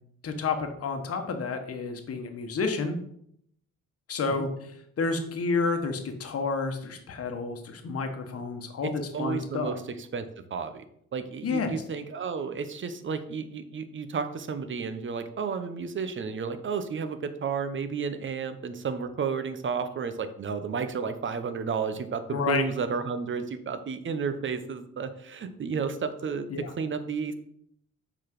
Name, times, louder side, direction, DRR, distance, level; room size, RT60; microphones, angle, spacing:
voice 1, 0.2-2.9 4.1-9.7 11.4-11.7 22.3-22.6 26.5-26.7, left 4 dB, 50° left, 5 dB, 1.3 m, -30 dB
voice 2, 8.8-9.8 10.1-10.8 11.1-26.5 26.8-27.3, right 5 dB, 40° right, 10 dB, 0.9 m, -32 dB
6.0 x 4.1 x 6.0 m, 0.70 s
cardioid pair, 90°, 30 cm